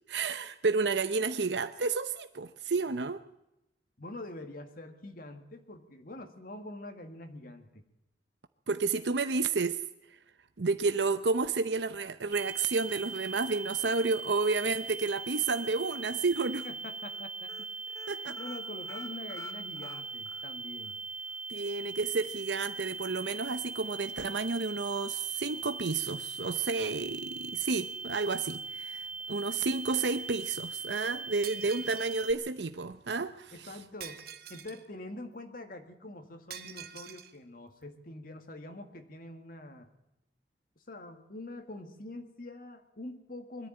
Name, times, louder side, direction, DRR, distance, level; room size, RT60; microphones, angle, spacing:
voice 1, 0.1-3.2 8.7-9.8 10.6-16.7 18.1-18.4 21.5-33.8, right 4 dB, 75° right, 0.8 m, -31 dB
voice 2, 4.0-7.8 16.6-17.5 18.1-20.9 33.5-34.2 34.5-39.9 40.9-43.7, left 2 dB, 50° left, 1.9 m, -45 dB
sound 1, 12.3-32.3, right 4 dB, 5° right, 2.8 m, -40 dB
sound 2, 15.6-16.2 16.5-16.7 17.0-17.2 17.5-20.5 20.8-20.9 21.3-21.4, left 3 dB, 15° left, 2.6 m, -49 dB
Shatter, 31.4-32.2 34.0-34.9 36.5-37.3, right 9 dB, 55° right, 1.3 m, -46 dB
21.5 x 14.0 x 8.9 m
head